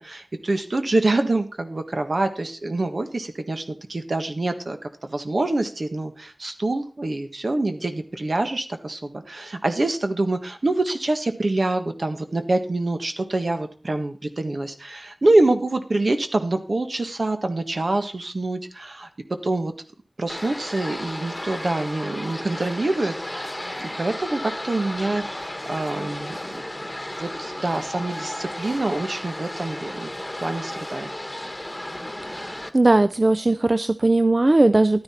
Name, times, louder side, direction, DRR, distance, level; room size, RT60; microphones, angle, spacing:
voice 1, 0.0-19.1 19.4-19.7 20.2-26.6 27.1-30.1 30.4-31.1, right 2 dB, 70° right, 7 dB, 1.4 m, -25 dB
sound 1, 20.3-32.7, left 1 dB, 20° left, 1.5 m, -34 dB
voice 2, 32.2-35.0, right 2 dB, 45° right, 12 dB, 0.5 m, -19 dB
12.0 x 9.9 x 4.3 m, 0.37 s
wide cardioid pair, 40°, 0 cm